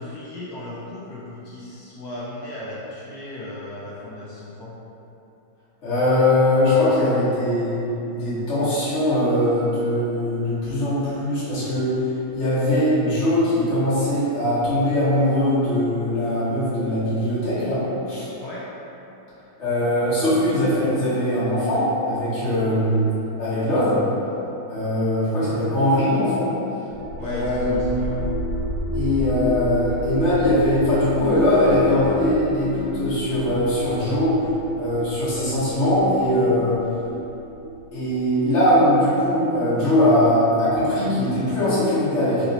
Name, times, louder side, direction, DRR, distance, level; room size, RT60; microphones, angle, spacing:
voice 1, 0.0-4.7 18.4-18.7 27.2-28.2, left 1 dB, 70° left, -7 dB, 0.9 m, -35 dB
voice 2, 5.8-7.8 8.1-12.0 12.3-18.3 19.6-23.1 23.4-24.0 24.7-26.5 27.2-28.1 28.9-34.4 34.7-36.8 37.9-42.5, left 1 dB, 40° left, -14 dB, 1.4 m, -21 dB
sound 1, 26.9-38.7, equal, 60° right, 1.5 m, -30 dB
3.8 x 2.9 x 3.9 m, 2.9 s
omnidirectional pair, 2.3 m